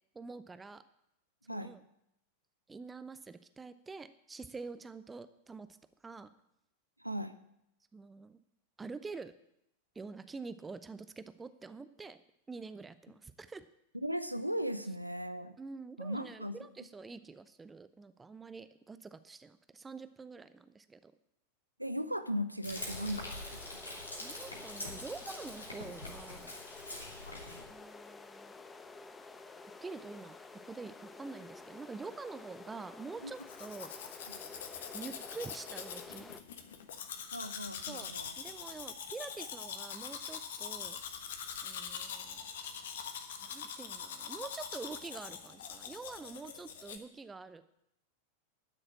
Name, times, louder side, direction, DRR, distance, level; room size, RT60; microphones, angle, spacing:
voice 1, 0.1-0.8 1.5-1.8 2.7-5.7 6.0-6.3 7.9-8.4 8.8-9.3 9.9-12.2 12.5-13.7 15.6-21.1 24.2-26.5 27.7-28.5 29.6-30.4 30.6-34.4 34.9-36.3 37.9-41.0 41.6-42.4 43.4-47.6, right 4 dB, 15° right, 13 dB, 0.7 m, -46 dB
voice 2, 7.0-7.4 14.0-15.6 16.0-16.6 21.8-23.4 23.7-23.8 24.2-24.3 33.2-33.3 37.3-38.3, equal, 90° right, 11 dB, 0.8 m, -37 dB
Frying (food), 22.6-27.6, left 1 dB, 80° left, 2.8 m, -44 dB
sound 1, 22.7-36.4, left 3 dB, 15° left, 0.8 m, -51 dB
Domestic sounds home sounds, 33.4-47.0, left 7 dB, 60° left, 1.3 m, -43 dB
12.0 x 6.5 x 8.8 m, 0.80 s
figure-of-eight pair, 90°, 0 cm